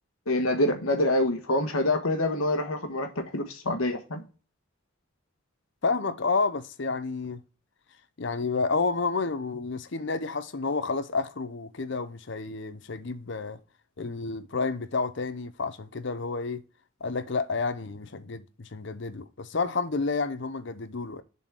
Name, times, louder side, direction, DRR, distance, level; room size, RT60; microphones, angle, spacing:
voice 1, 0.3-4.2, left 1 dB, 80° left, 1.4 m, -26 dB
voice 2, 5.8-7.4 8.2-13.6 14.0-16.6 17.0-21.2, left 4 dB, 55° left, 0.7 m, -30 dB
7.2 x 4.2 x 4.7 m
head